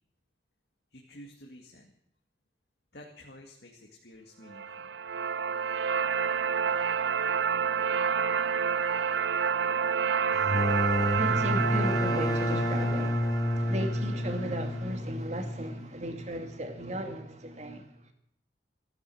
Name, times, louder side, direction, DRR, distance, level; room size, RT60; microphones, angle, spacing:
voice 1, 0.9-1.9 2.9-5.0, left 1 dB, 65° left, 2.3 m, -51 dB
sound 1, 4.5-14.6, right 6 dB, 80° right, 0.6 m, -29 dB
sound 2, 10.3-15.9, left 1 dB, 20° left, 0.7 m, -29 dB
voice 2, 10.5-18.1, right 1 dB, 40° right, 2.4 m, -36 dB
15.5 x 12.0 x 7.7 m
head